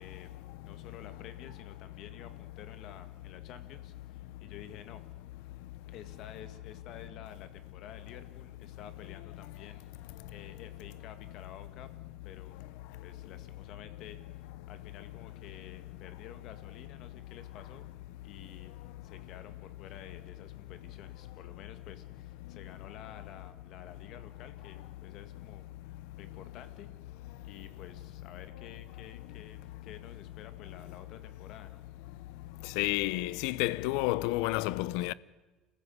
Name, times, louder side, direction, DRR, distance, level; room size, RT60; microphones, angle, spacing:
voice 1, 0.0-5.0 5.9-11.9 12.2-12.6 13.0-17.9 18.2-18.7 19.0-27.0 27.4-31.8, left 9 dB, 50° left, 2.0 m, -51 dB
voice 2, 32.8-35.1, left 18 dB, 85° left, 0.7 m, -30 dB
28.0 x 15.0 x 9.7 m
cardioid pair, 175°, 0 cm